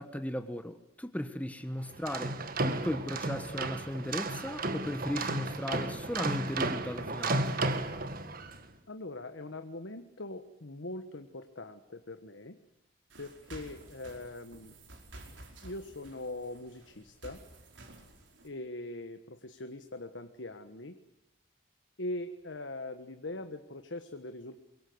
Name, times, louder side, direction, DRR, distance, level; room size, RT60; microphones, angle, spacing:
voice 1, 0.0-7.5, equal, 10° left, 9 dB, 1.2 m, -37 dB
sound 1, 1.9-8.6, right 2 dB, 50° right, 1.7 m, -33 dB
voice 2, 8.9-12.6 13.2-14.7 15.6-17.4 18.4-21.0 22.0-24.6, left 2 dB, 85° left, 8 dB, 1.4 m, -42 dB
sound 2, 13.1-18.5, right 2 dB, 85° right, 5.1 m, -52 dB
24.0 x 23.0 x 8.0 m, 0.87 s
head